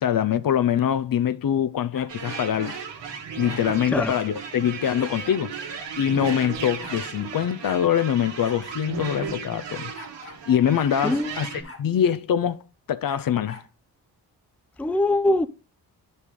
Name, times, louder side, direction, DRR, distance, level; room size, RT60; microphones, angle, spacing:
voice 1, 0.0-2.8 3.4-5.5 6.0-9.9 10.5-11.5 11.8-12.6 12.9-13.6, left 9 dB, 55° left, 0.6 m, -24 dB
sound 1, 1.9-2.8 3.5-3.7 5.0-5.5 6.3-6.4 6.6-7.0 7.6-7.8 8.4-8.6 8.9-9.0 9.9-10.4 10.7-11.0 11.6-11.9 13.0-13.7, left 3 dB, 30° left, 1.7 m, -44 dB
sound 2, 2.1-11.6, right 6 dB, 85° right, 1.6 m, -35 dB
voice 2, 11.0-11.4 14.8-15.5, left 1 dB, 5° left, 0.4 m, -22 dB
9.3 x 5.4 x 3.3 m
supercardioid pair, 50°, 42 cm